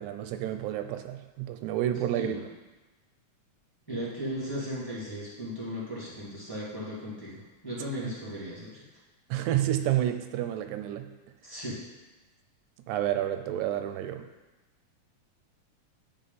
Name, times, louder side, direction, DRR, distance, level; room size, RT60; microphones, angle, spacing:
voice 1, 0.0-2.4 8.0-8.1 9.3-11.1 12.9-14.3, right 12 dB, 90° right, 8 dB, 2.0 m, -30 dB
voice 2, 3.9-8.9 11.4-11.9, equal, 10° left, -8 dB, 1.9 m, -36 dB
10.5 x 3.7 x 4.1 m, 1.1 s
omnidirectional pair, 3.3 m